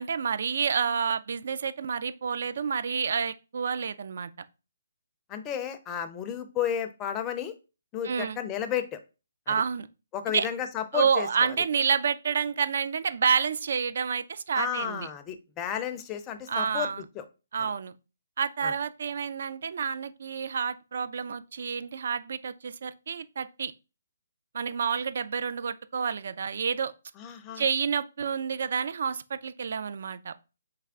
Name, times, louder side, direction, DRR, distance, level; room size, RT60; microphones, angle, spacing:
voice 1, 0.0-4.3 8.0-8.4 9.5-9.9 10.3-10.5 10.9-15.1 16.5-17.0 17.5-17.9 18.4-23.7 24.5-26.9 27.6-30.3, right 6 dB, 60° right, 0.3 m, -29 dB
voice 2, 5.3-7.5 7.9-9.0 9.5-9.6 10.1-11.5 14.5-16.9 17.2-17.3 18.6-18.7 27.2-27.6, left 9 dB, 20° left, 0.4 m, -32 dB
3.4 x 3.2 x 3.6 m
hypercardioid pair, 160°, 0 cm